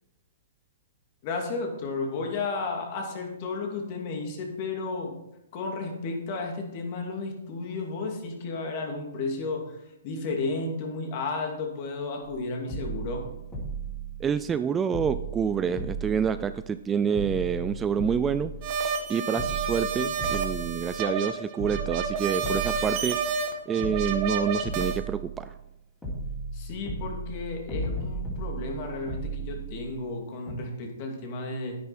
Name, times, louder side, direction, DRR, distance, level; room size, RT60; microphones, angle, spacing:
voice 1, 1.2-5.1 5.5-9.8 10.0-13.2 26.5-31.8, left 3 dB, 40° left, 1 dB, 2.6 m, -33 dB
sound 1, 12.2-12.4 12.7-14.6 14.9-16.8 17.1-19.0 19.4-21.3 21.6-23.5 23.8-25.7 26.0-30.2 30.5-30.6, right 3 dB, 10° left, 3.9 m, -36 dB
voice 2, 14.2-18.5 19.1-23.2 23.7-25.5, right 7 dB, 15° right, 12 dB, 0.3 m, -27 dB
sound 2, 18.6-25.0, right 5 dB, 35° right, 1.5 m, -30 dB
10.5 x 9.4 x 4.3 m, 0.89 s
hypercardioid pair, 145°, 0 cm